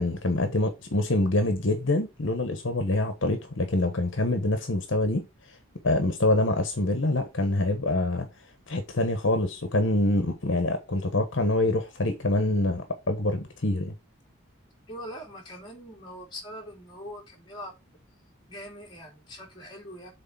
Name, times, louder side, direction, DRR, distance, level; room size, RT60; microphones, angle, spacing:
voice 1, 0.0-5.3 5.8-8.3 8.7-13.9, left 2 dB, 65° left, 1.2 m, -25 dB
voice 2, 14.9-17.7 18.5-20.1, equal, 20° left, 2.7 m, -42 dB
6.5 x 4.1 x 5.6 m
head